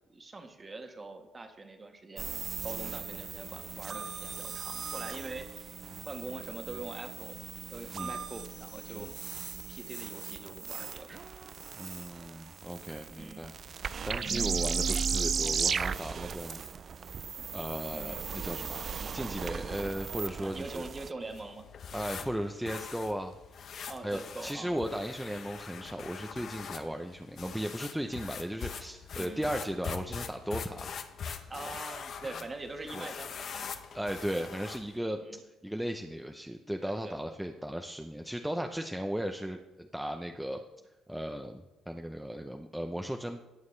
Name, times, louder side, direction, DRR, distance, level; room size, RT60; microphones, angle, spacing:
voice 1, 0.1-2.3 2.6-5.8 6.0-9.4 9.7-11.3 13.1-13.5 14.2-14.6 17.9-18.2 20.4-21.7 23.8-24.7 29.2-29.5 31.5-33.7 35.2-35.4 36.8-37.3, right 3 dB, 25° right, 5 dB, 1.4 m, -43 dB
sound 1, 2.2-21.1, right 6 dB, 45° right, 0.4 m, -36 dB
voice 2, 11.7-13.5 14.0-16.6 17.0-17.1 17.5-20.8 21.9-23.3 24.0-31.0 31.3-31.4 32.9-33.1 33.9-40.6 41.1-43.4, equal, 5° right, 4 dB, 0.6 m, -36 dB
sound 2, 21.2-35.0, left 7 dB, 55° left, 0.8 m, -43 dB
18.5 x 6.4 x 3.3 m, 1.0 s
cardioid pair, 100°, 0 cm